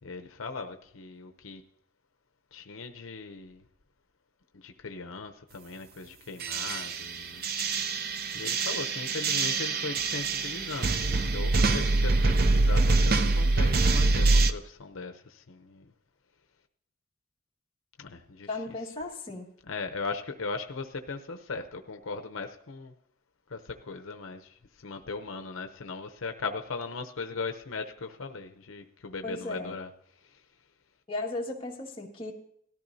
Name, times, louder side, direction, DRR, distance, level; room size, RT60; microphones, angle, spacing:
voice 1, 0.0-1.6 2.5-3.7 4.5-7.5 7.9-15.9 18.0-18.9 19.6-22.9 23.5-30.5, left 4 dB, 75° left, 0.7 m, -39 dB
sound 1, 6.4-14.5, right 3 dB, 45° right, 0.5 m, -25 dB
voice 2, 18.5-19.5 29.2-29.7 31.1-32.3, left 2 dB, 25° left, 1.8 m, -35 dB
18.0 x 13.5 x 2.7 m
head